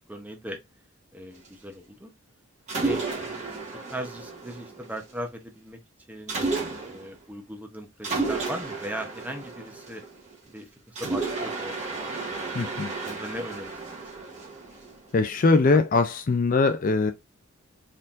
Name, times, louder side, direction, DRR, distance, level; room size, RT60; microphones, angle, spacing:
voice 1, 0.1-0.6 1.1-2.1 2.7-5.8 6.1-10.0 10.5-12.7 13.0-14.4 15.7-15.8, right 1 dB, 5° right, 0.8 m, -39 dB
Mechanisms, 2.7-5.1 6.3-7.1 8.0-10.4 11.0-15.1, right 3 dB, 35° right, 1.7 m, -32 dB
voice 2, 12.5-12.9 15.1-17.1, left 3 dB, 40° left, 0.4 m, -21 dB
4.4 x 3.7 x 2.5 m
head